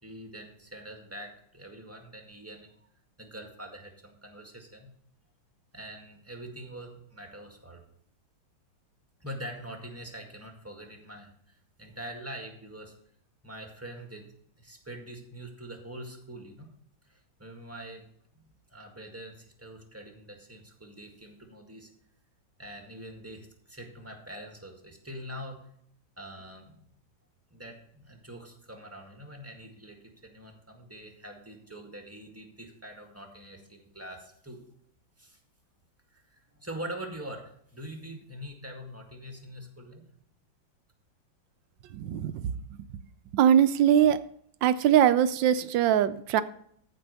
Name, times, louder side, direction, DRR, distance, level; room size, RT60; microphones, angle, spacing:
voice 1, 0.0-2.9 3.2-4.9 5.7-7.8 9.2-12.9 13.4-14.2 14.6-16.7 17.0-18.0 18.3-21.9 22.6-25.7 26.2-26.8 27.5-30.0 30.2-34.6 35.2-35.4 36.1-40.0, right 1 dB, 10° right, 3 dB, 1.7 m, -44 dB
voice 2, 41.9-42.5 43.3-44.2 44.6-46.4, right 10 dB, 75° right, 13 dB, 1.2 m, -22 dB
14.5 x 5.3 x 6.8 m, 0.66 s
omnidirectional pair, 2.1 m